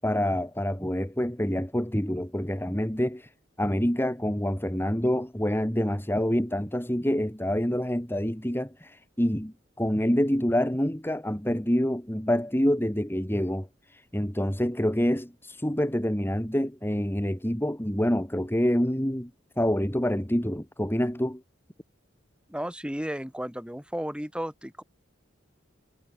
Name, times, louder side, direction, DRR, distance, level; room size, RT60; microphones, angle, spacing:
voice 1, 0.0-3.3 3.6-19.3 19.6-21.4, equal, 10° left, 2.7 m, -27 dB
voice 2, 22.5-24.8, equal, 5° right, 5.5 m, -33 dB
head